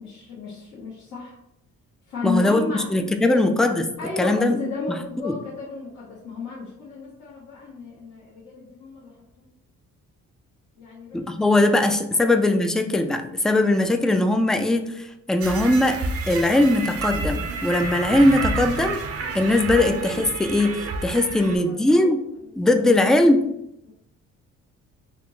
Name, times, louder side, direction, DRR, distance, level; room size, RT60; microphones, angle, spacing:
voice 1, 0.0-1.4 2.1-2.9 3.2-3.4 4.0-9.1 9.4-9.5 10.8-11.5 21.0-21.8 22.5-22.7 23.8-23.9, left 4 dB, 80° left, -9 dB, 1.4 m, -33 dB
voice 2, 2.2-3.9 4.2-4.6 5.2-5.3 11.1-16.0 16.3-19.0 19.3-22.2 22.6-23.5, left 1 dB, ahead, 6 dB, 0.3 m, -20 dB
sound 1, 15.4-21.6, right 4 dB, 50° right, 0.7 m, -30 dB
4.2 x 2.8 x 3.1 m, 0.81 s
cardioid pair, 90°, 30 cm